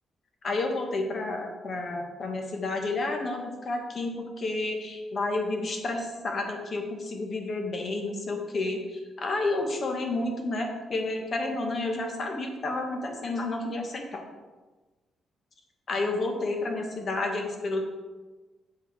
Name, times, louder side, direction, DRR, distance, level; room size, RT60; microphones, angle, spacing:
voice 1, 0.4-14.2 15.9-17.9, left 2 dB, 45° left, 3 dB, 1.3 m, -30 dB
7.4 x 5.4 x 3.3 m, 1.2 s
cardioid pair, 105°, 0 cm